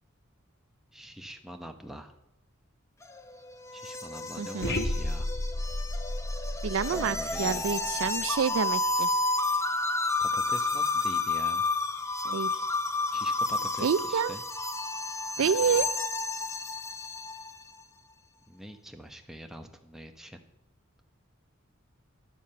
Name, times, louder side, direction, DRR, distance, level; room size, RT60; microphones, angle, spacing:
voice 1, 0.9-2.1 3.7-5.3 6.9-8.2 10.2-11.7 13.1-14.4 15.4-15.5 18.5-20.4, equal, ahead, 4 dB, 1.0 m, -44 dB
sound 1, 3.0-17.6, left 3 dB, 15° left, 0.7 m, -31 dB
voice 2, 4.4-4.9 6.6-9.1 12.2-12.5 13.8-14.3 15.4-15.9, right 7 dB, 70° right, 16 dB, 0.4 m, -28 dB
sound 2, 4.6-8.7, left 1 dB, 55° left, 1.4 m, -33 dB
10.5 x 10.5 x 5.8 m, 0.83 s
head